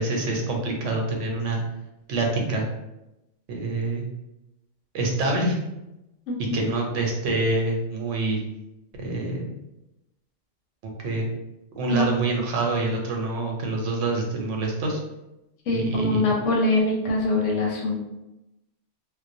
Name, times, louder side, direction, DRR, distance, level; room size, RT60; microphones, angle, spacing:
voice 1, 0.0-1.6 2.1-2.7 3.5-4.1 4.9-5.6 6.5-8.4 9.0-9.5 11.0-11.3 11.7-15.0 15.7-16.3, right 2 dB, 85° right, 0 dB, 0.9 m, -26 dB
voice 2, 15.7-18.0, left 2 dB, 90° left, -1 dB, 1.0 m, -23 dB
2.3 x 2.1 x 2.5 m, 0.94 s
omnidirectional pair, 1.2 m